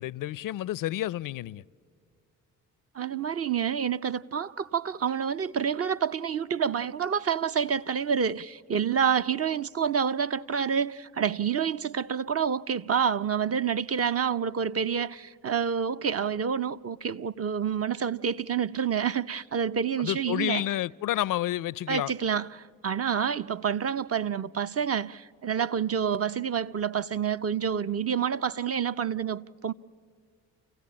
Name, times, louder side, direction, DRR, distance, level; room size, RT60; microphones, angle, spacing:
voice 1, 0.0-1.6 20.0-22.1, left 14 dB, 55° left, 0.5 m, -30 dB
voice 2, 2.9-20.6 21.9-29.7, right 7 dB, 40° right, 0.6 m, -28 dB
29.0 x 16.0 x 8.6 m
hypercardioid pair, 45°, 39 cm